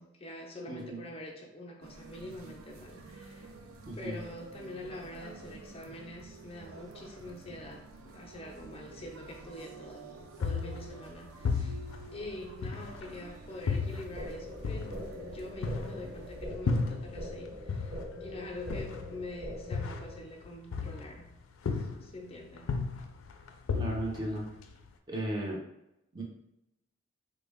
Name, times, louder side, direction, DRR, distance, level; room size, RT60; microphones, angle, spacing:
voice 1, 0.0-3.5 3.9-11.8 12.1-21.3 21.7-22.7, left 1 dB, 30° left, 0 dB, 0.5 m, -45 dB
voice 2, 0.7-1.1 3.9-4.2 23.7-24.4 25.1-25.6 26.1-26.2, right 1 dB, 20° right, -2 dB, 0.6 m, -35 dB
sound 1, 1.8-16.5, right 3 dB, 85° right, 0.4 m, -50 dB
sound 2, 10.4-13.2 13.7-17.4 17.7-21.3 21.7-22.2 22.6-24.9, left 4 dB, 85° left, 0.4 m, -34 dB
sound 3, 14.2-20.2, equal, 45° right, 1.1 m, -43 dB
3.5 x 2.1 x 3.4 m, 0.86 s
head